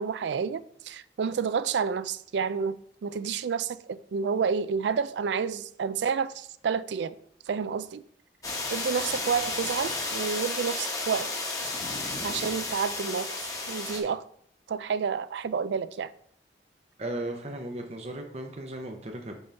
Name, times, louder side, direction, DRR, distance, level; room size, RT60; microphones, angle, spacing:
voice 1, 0.0-7.2 7.5-8.0 8.7-11.3 12.2-13.4 13.7-14.2 14.7-16.1, right 6 dB, 85° right, 0.4 m, -29 dB
sound 1, 8.4-14.0, left 3 dB, 20° left, 1.0 m, -32 dB
voice 2, 17.0-19.3, right 1 dB, 35° right, 0.6 m, -36 dB
5.4 x 5.4 x 4.4 m
head